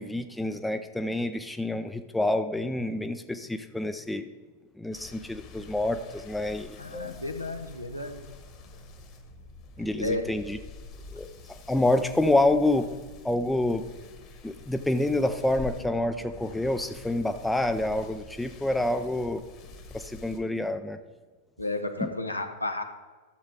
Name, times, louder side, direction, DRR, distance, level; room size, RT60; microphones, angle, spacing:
voice 1, 0.0-4.3 4.8-7.2 9.8-10.6 11.1-11.3 11.7-12.9 13.2-13.9 14.4-19.4 19.9-21.0 22.0-22.1, left 1 dB, 5° left, 8 dB, 0.5 m, -27 dB
sound 1, 4.9-20.4, left 3 dB, 40° left, 1.5 m, -46 dB
voice 2, 6.8-8.2 10.0-10.3 21.6-22.8, left 2 dB, 85° left, 5 dB, 0.9 m, -32 dB
12.5 x 7.3 x 3.6 m, 1.4 s
figure-of-eight pair, 90°, 0 cm